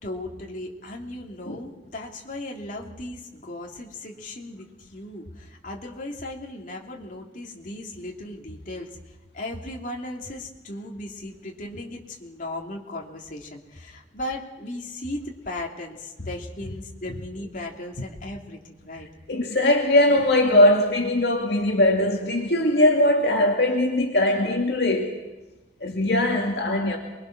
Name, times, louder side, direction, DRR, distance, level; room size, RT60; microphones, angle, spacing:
voice 1, 0.0-8.9 9.3-19.1, left 1 dB, 45° left, 0 dB, 3.0 m, -36 dB
voice 2, 19.3-25.2 25.8-27.0, left 1 dB, 65° left, 1 dB, 2.3 m, -20 dB
27.5 x 22.5 x 6.1 m, 1.1 s
head